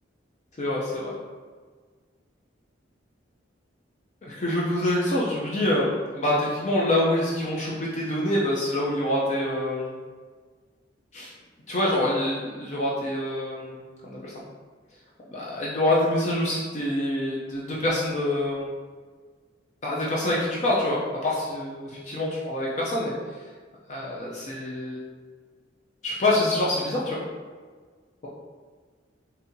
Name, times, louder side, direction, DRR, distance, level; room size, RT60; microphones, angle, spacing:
voice 1, 0.6-1.1 4.2-10.0 11.1-11.3 11.7-13.8 14.0-14.3 15.3-18.7 19.8-23.1 23.9-25.1 26.0-27.2, left 1 dB, 40° left, -5 dB, 0.5 m, -26 dB
4.0 x 2.7 x 2.6 m, 1.5 s
head